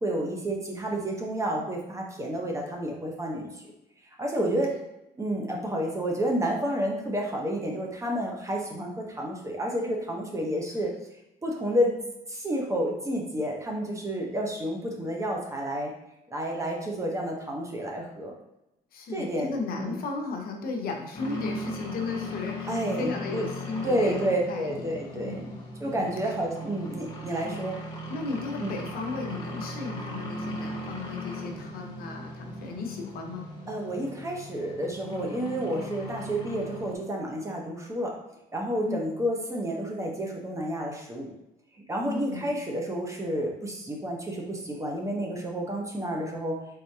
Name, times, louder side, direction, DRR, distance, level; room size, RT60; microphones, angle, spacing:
voice 1, 0.0-3.6 4.2-4.7 5.2-10.9 11.4-12.0 12.3-15.9 16.3-18.3 19.1-20.0 22.7-23.4 23.8-25.5 25.8-27.8 28.6-28.7 33.7-38.2 38.5-41.3 41.9-46.6, equal, 20° right, 0 dB, 0.8 m, -30 dB
voice 2, 18.9-25.6 26.0-26.3 27.4-27.6 28.1-33.5 38.9-39.1 42.0-42.6, left 3 dB, 60° left, 2 dB, 0.8 m, -35 dB
sound 1, 21.1-37.0, left 1 dB, 25° left, 1.2 m, -38 dB
4.0 x 3.7 x 2.7 m, 0.90 s
cardioid pair, 110°, 17 cm